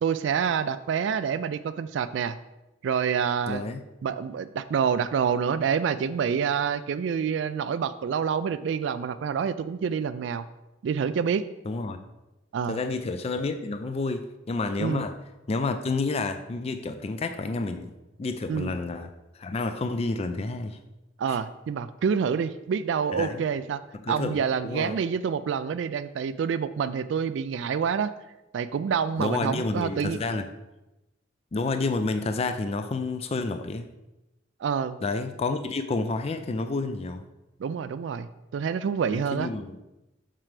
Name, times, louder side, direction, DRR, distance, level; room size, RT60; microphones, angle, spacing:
voice 1, 0.0-2.4 2.8-3.6 4.0-10.5 10.8-11.4 12.5-12.8 14.8-15.1 18.5-18.8 21.2-23.8 24.1-28.1 28.5-30.2 34.6-35.0 37.6-39.5, right 7 dB, 70° right, 13 dB, 0.3 m, -27 dB
voice 2, 3.5-3.8 11.7-12.0 12.7-15.1 15.5-17.9 18.2-20.8 21.3-21.4 23.1-23.4 23.9-25.0 29.2-30.5 31.5-33.9 35.0-37.2 39.1-39.8, left 3 dB, 35° left, 8 dB, 0.4 m, -30 dB
7.4 x 6.0 x 3.3 m, 0.98 s
head